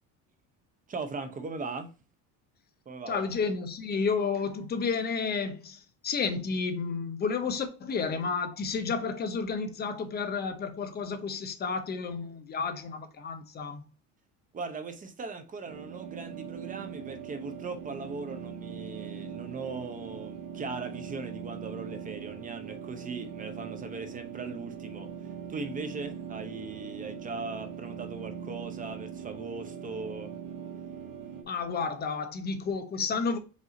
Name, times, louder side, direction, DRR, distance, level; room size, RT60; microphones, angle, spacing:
voice 1, 0.9-1.9 2.9-3.2 14.5-25.1 25.5-30.4, right 4 dB, 25° right, 0.7 m, -39 dB
voice 2, 3.1-13.8 31.4-33.4, left 5 dB, 30° left, 0.7 m, -31 dB
sound 1, 15.6-31.4, right 7 dB, 70° right, 1.1 m, -41 dB
5.1 x 2.7 x 3.9 m
cardioid pair, 140°, 34 cm